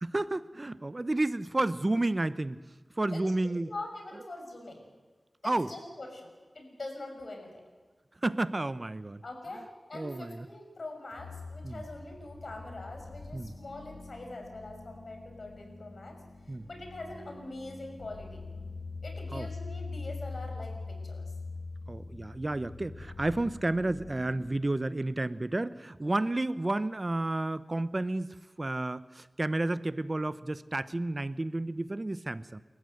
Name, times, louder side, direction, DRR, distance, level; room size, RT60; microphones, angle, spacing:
voice 1, 0.0-2.6 3.0-3.7 5.4-5.7 8.2-9.2 9.9-10.5 11.6-11.8 13.3-13.5 16.5-16.7 19.3-19.5 21.9-32.6, right 2 dB, 40° right, 15 dB, 0.8 m, -31 dB
voice 2, 3.1-4.8 5.4-7.6 9.2-16.2 16.6-18.4 19.0-21.3 26.0-26.1, left 2 dB, 70° left, 3 dB, 6.4 m, -43 dB
sound 1, 11.2-24.6, left 3 dB, 90° left, 2.5 m, -43 dB
29.5 x 15.0 x 7.9 m, 1.3 s
cardioid pair, 45°, 0 cm